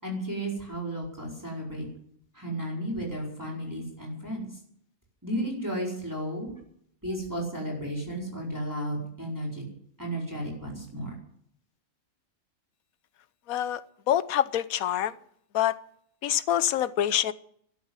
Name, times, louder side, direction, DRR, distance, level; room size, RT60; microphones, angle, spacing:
voice 1, 0.0-1.8 2.3-4.6 5.2-6.5 7.0-9.6 10.0-11.1, right 1 dB, 10° right, -2 dB, 4.6 m, -33 dB
voice 2, 13.5-13.8 14.1-15.1 15.5-15.7 16.2-17.3, left 11 dB, 75° left, 15 dB, 1.2 m, -25 dB
13.0 x 12.0 x 7.9 m, 0.66 s
omnidirectional pair, 1.5 m